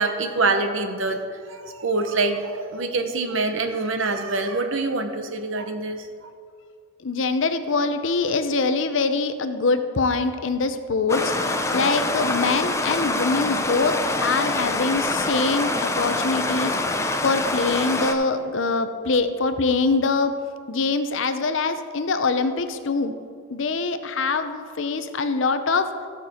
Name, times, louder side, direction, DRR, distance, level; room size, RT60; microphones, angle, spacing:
voice 1, 0.0-6.3, right 3 dB, 65° right, 7 dB, 0.9 m, -25 dB
voice 2, 7.0-11.3 11.7-14.0 14.2-16.7 17.2-20.3 20.7-23.1 23.5-25.9, left 4 dB, 60° left, 9 dB, 0.6 m, -23 dB
Stream, 11.1-18.1, left 2 dB, 15° left, 0.5 m, -25 dB
14.0 x 6.7 x 4.3 m, 2.1 s
head